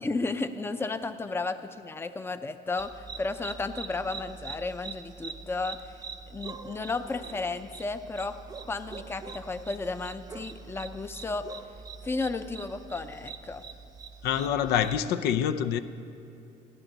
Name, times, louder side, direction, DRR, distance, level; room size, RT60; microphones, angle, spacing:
voice 1, 0.0-6.0 6.3-8.4 8.7-11.5 12.0-13.6, left 3 dB, 15° left, 10 dB, 0.5 m, -33 dB
sound 1, 2.8-15.0, right 5 dB, 20° right, 0.7 m, -44 dB
voice 2, 14.2-15.8, left 9 dB, 80° left, 11 dB, 0.6 m, -26 dB
29.0 x 10.0 x 4.0 m, 2.7 s
cardioid pair, 150°, 17 cm